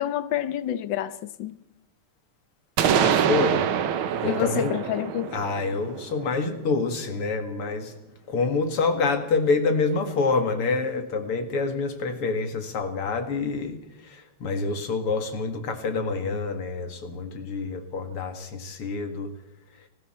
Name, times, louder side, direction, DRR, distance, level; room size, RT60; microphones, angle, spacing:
voice 1, 0.0-1.6 4.2-5.4, left 11 dB, 65° left, 1.6 m, -28 dB
sound 1, 2.8-6.6, right 8 dB, 70° right, 1.9 m, -25 dB
voice 2, 2.9-3.7 4.2-4.8 5.3-7.9 8.3-19.3, left 4 dB, 80° left, 2.9 m, -27 dB
30.0 x 20.0 x 4.4 m
omnidirectional pair, 2.4 m